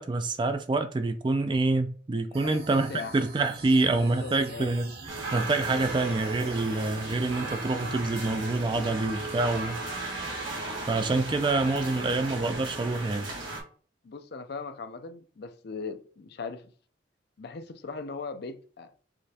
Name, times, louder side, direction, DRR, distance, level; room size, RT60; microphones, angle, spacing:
voice 1, 0.0-9.8 10.9-13.3, right 2 dB, 25° right, 0.3 m, -27 dB
voice 2, 2.3-3.1 4.0-4.7 11.3-11.4 14.0-16.7 17.4-19.0, left 4 dB, 55° left, 0.4 m, -39 dB
sound 1, 2.3-12.6, right 2 dB, 55° right, 0.7 m, -46 dB
sound 2, 5.1-13.6, right 2 dB, 90° right, 1.5 m, -36 dB
5.0 x 3.3 x 2.7 m
head